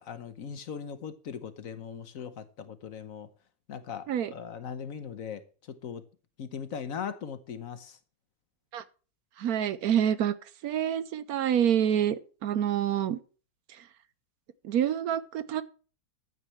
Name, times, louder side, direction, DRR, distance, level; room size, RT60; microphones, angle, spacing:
voice 1, 0.0-3.3 3.7-5.4 5.7-6.0 6.4-8.0, left 7 dB, 60° left, 1.2 m, -39 dB
voice 2, 9.4-10.3 10.6-13.2 14.6-15.6, right 9 dB, 70° right, 1.1 m, -27 dB
14.0 x 9.3 x 3.2 m
omnidirectional pair, 1.7 m